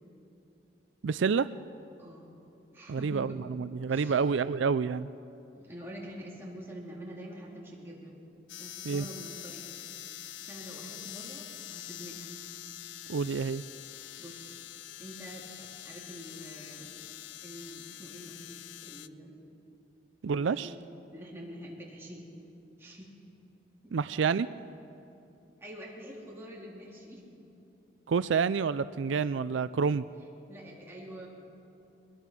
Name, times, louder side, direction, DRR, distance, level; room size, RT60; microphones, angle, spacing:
voice 1, 1.0-1.5 2.9-5.1 8.8-9.1 13.1-13.6 20.2-20.7 23.9-24.5 28.1-30.1, right 5 dB, 85° right, 15 dB, 0.4 m, -28 dB
voice 2, 2.7-3.4 3.9-4.2 5.6-8.2 8.6-9.7 10.4-12.3 14.2-14.6 15.0-16.9 17.4-19.4 20.4-20.8 21.1-22.3 22.8-23.1 23.8-23.9 25.6-27.4 30.5-31.3, equal, 15° right, -5 dB, 3.8 m, -46 dB
sound 1, 8.5-19.1, left 12 dB, 80° left, 0.5 m, -45 dB
22.5 x 21.5 x 6.1 m, 2.8 s
head